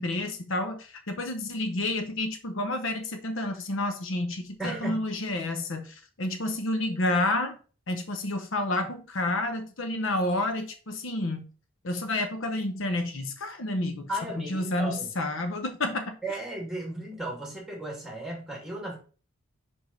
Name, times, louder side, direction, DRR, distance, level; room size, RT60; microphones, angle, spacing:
voice 1, 0.0-7.6 7.9-11.5 11.8-14.1 14.4-16.2, left 2 dB, 65° left, 0.8 m, -30 dB
voice 2, 4.6-5.0 14.1-15.1 16.2-19.0, right 1 dB, ahead, 2.2 m, -35 dB
5.4 x 5.0 x 4.0 m
head